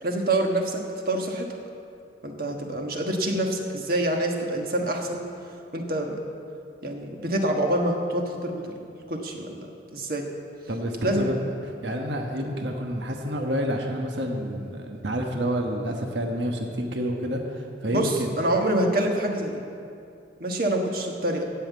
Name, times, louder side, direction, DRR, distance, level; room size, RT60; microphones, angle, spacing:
voice 1, 0.0-1.5 2.2-5.2 5.7-6.2 6.8-10.3 11.0-11.3 17.9-19.6 20.4-21.5, right 1 dB, 50° right, 2 dB, 1.4 m, -26 dB
voice 2, 10.7-11.4 11.8-18.4, equal, 75° right, 2 dB, 1.2 m, -29 dB
16.0 x 5.7 x 8.2 m, 2.5 s
head